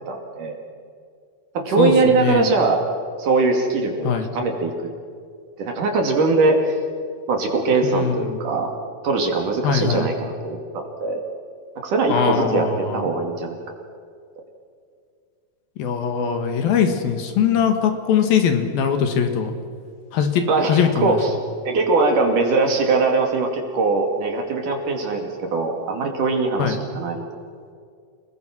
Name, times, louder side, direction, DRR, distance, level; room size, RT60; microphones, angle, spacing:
voice 1, 0.1-0.6 1.6-2.8 3.2-4.7 5.6-6.7 7.3-8.7 9.0-11.2 11.8-13.6 20.5-21.3 21.7-27.2, right 3 dB, 55° right, 3 dB, 3.8 m, -21 dB
voice 2, 1.8-2.5 4.0-4.3 7.8-8.4 9.6-10.1 12.1-13.1 15.8-19.5 20.1-21.2 26.6-26.8, left 7 dB, 70° left, 6 dB, 3.3 m, -21 dB
29.5 x 20.0 x 6.1 m, 2.2 s
omnidirectional pair, 4.6 m